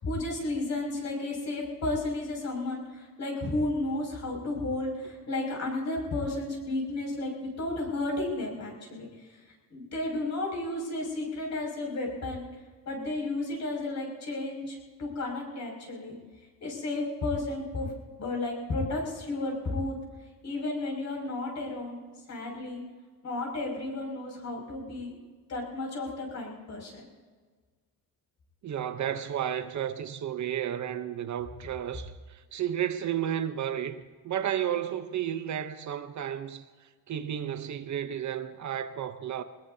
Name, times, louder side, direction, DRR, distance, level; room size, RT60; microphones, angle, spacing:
voice 1, 0.0-9.4 9.7-12.5 12.9-16.2 16.6-17.9 18.2-19.9 20.4-22.0 22.3-22.8 23.2-25.1 25.5-27.0, left 2 dB, 50° left, 6.1 m, -33 dB
voice 2, 28.6-36.6 37.1-39.4, right 10 dB, 50° right, 0.8 m, -32 dB
23.0 x 20.5 x 2.8 m
cardioid pair, 165°, 36 cm